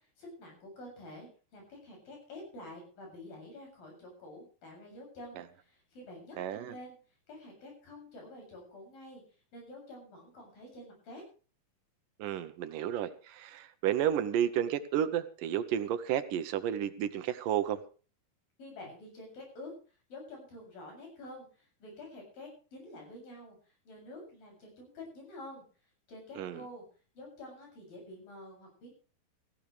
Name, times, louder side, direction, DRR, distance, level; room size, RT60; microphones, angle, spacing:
voice 1, 0.2-7.0 7.3-9.2 9.5-11.2 18.6-19.7 20.1-23.6 23.9-25.6 26.1-26.8 27.2-28.9, left 1 dB, 80° left, 1 dB, 9.1 m, -48 dB
voice 2, 6.4-6.7 12.2-17.8 26.4-26.6, right 10 dB, 75° right, 12 dB, 2.5 m, -32 dB
17.5 x 16.0 x 3.3 m, 0.37 s
omnidirectional pair, 4.0 m